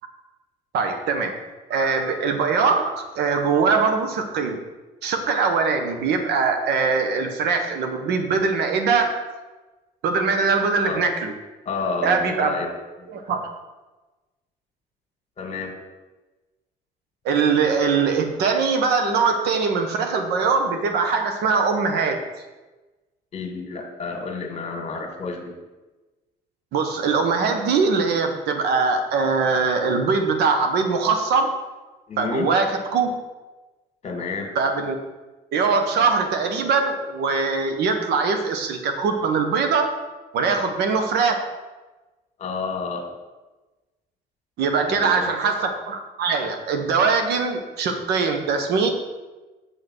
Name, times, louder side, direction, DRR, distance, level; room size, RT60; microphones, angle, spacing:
voice 1, 0.7-1.4 1.7-4.6 5.0-9.3 10.0-11.3 12.0-12.6 13.1-13.4 17.2-22.2 26.7-31.5 32.2-33.1 34.5-35.0 35.5-40.0 40.3-41.3 44.6-48.9, right 4 dB, 75° right, 6 dB, 1.3 m, -22 dB
voice 2, 11.7-12.7 13.0-13.1 15.4-15.7 23.3-25.5 32.1-32.5 34.0-34.5 40.4-40.6 42.4-43.1 44.9-45.3, left 4 dB, 40° left, 3 dB, 2.0 m, -30 dB
7.9 x 5.5 x 6.2 m, 1.2 s
cardioid pair, 110°, 17 cm